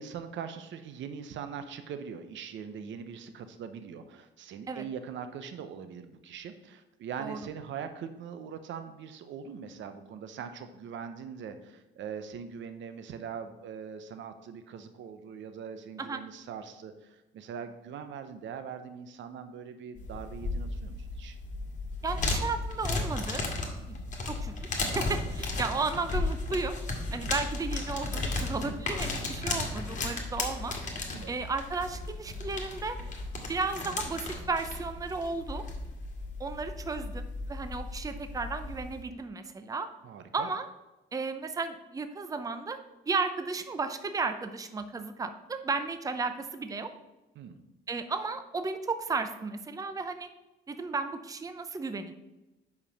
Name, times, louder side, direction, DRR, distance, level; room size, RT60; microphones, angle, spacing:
voice 1, 0.0-21.4 23.8-24.0 25.7-25.9 27.1-27.3 31.1-31.3 40.0-40.5 47.4-47.6, right 7 dB, 70° right, 9 dB, 0.7 m, -42 dB
sound 1, 20.0-39.0, left 3 dB, 40° left, 1.7 m, -35 dB
voice 2, 22.0-23.4 24.3-24.5 24.8-26.7 27.1-30.8 31.3-33.0 33.5-35.6 36.4-39.9 40.3-40.7 41.1-42.8 43.1-46.9 47.9-50.3 50.7-52.1, right 4 dB, 15° right, 9 dB, 0.5 m, -34 dB
5.3 x 4.9 x 6.4 m, 1.0 s
cardioid pair, 90°, 20 cm